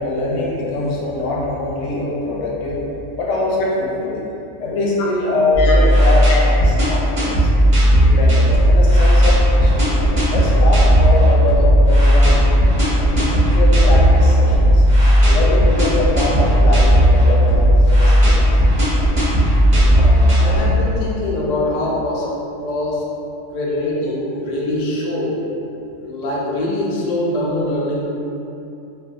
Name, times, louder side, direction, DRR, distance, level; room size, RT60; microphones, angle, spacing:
voice 1, 0.0-2.8 3.2-4.2 4.6-7.4 7.9-12.5 13.1-14.8 15.3-18.6 23.7-23.8, left 2 dB, 85° left, -4 dB, 0.9 m, -23 dB
sound 1, 5.5-21.1, equal, 35° right, 0.7 m, -14 dB
voice 2, 19.9-22.3 22.6-23.0 23.5-25.4 26.0-28.1, left 1 dB, 55° left, -5 dB, 0.4 m, -23 dB
3.3 x 2.2 x 2.5 m, 2.8 s
omnidirectional pair, 1.3 m